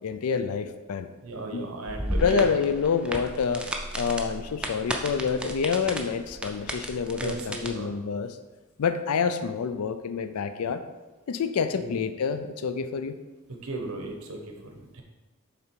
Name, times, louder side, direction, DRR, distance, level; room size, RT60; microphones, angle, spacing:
voice 1, 0.0-1.1 1.5-1.7 2.2-3.7 4.0-8.4 8.8-10.8 11.3-13.2, left 6 dB, 85° left, 10 dB, 0.4 m, -27 dB
voice 2, 1.2-2.5 7.2-7.9 11.8-12.0 13.6-15.0, right 3 dB, 75° right, 3 dB, 0.9 m, -35 dB
sound 1, 1.9-7.7, right 1 dB, 5° right, 0.4 m, -34 dB
6.7 x 3.8 x 4.5 m, 1.2 s
head